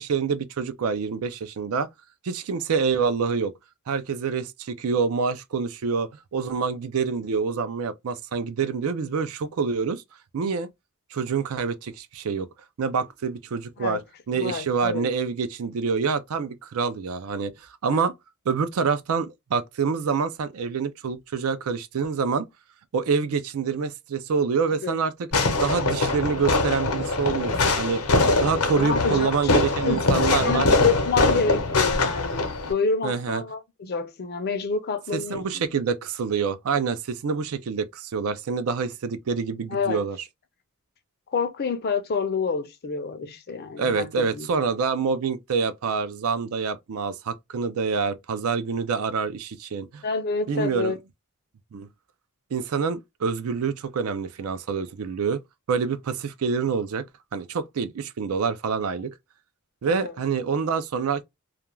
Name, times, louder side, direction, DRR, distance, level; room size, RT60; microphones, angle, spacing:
voice 1, 0.0-1.9 2.2-3.5 3.9-10.0 10.3-10.7 11.1-12.5 12.8-14.0 14.3-17.5 17.8-18.1 18.5-22.5 22.9-25.1 25.6-28.0 28.4-30.7 33.0-33.4 35.1-40.2 43.8-50.0 50.5-50.9 51.7-51.9 52.5-55.4 55.7-57.0 57.3-59.1 59.8-61.2, right 5 dB, 65° right, 0.4 m, -26 dB
voice 2, 14.3-15.1 17.9-18.1 24.8-25.0 27.5-27.8 28.7-29.3 29.9-35.6 39.7-40.0 41.3-44.5 50.0-51.0 59.9-60.1, left 5 dB, 45° left, 0.5 m, -28 dB
Fireworks, 25.3-32.7, left 3 dB, 85° left, 0.8 m, -23 dB
2.4 x 2.2 x 3.0 m
head